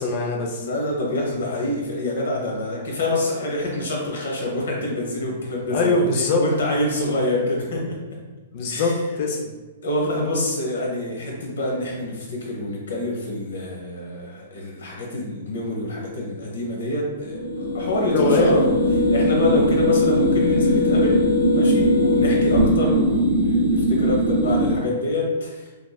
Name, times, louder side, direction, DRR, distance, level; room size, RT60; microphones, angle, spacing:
voice 1, 0.0-0.7 5.7-6.5 8.5-9.5 18.1-18.6, left 3 dB, 45° left, 1 dB, 0.4 m, -22 dB
voice 2, 0.6-6.1 6.4-8.0 8.6-8.9 9.8-18.8 19.1-25.7, left 1 dB, 85° left, -1 dB, 0.9 m, -26 dB
sound 1, 17.2-24.8, equal, 55° right, 0.6 m, -20 dB
3.1 x 2.6 x 2.3 m, 1.3 s
hypercardioid pair, 155°, 0 cm